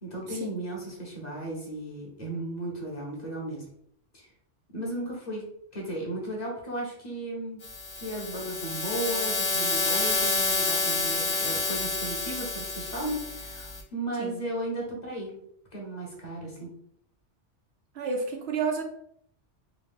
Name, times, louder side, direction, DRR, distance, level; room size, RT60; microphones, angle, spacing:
voice 1, 0.0-3.6 4.1-4.3 4.7-5.5 5.7-7.6 8.0-15.4 15.7-16.8, right 1 dB, 35° left, -3 dB, 1.1 m, -35 dB
sound 1, 7.6-13.8, left 3 dB, 75° left, 1.2 m, -29 dB
voice 2, 17.9-18.8, right 5 dB, 65° right, 2 dB, 0.8 m, -30 dB
3.7 x 2.5 x 3.5 m, 0.67 s
omnidirectional pair, 1.2 m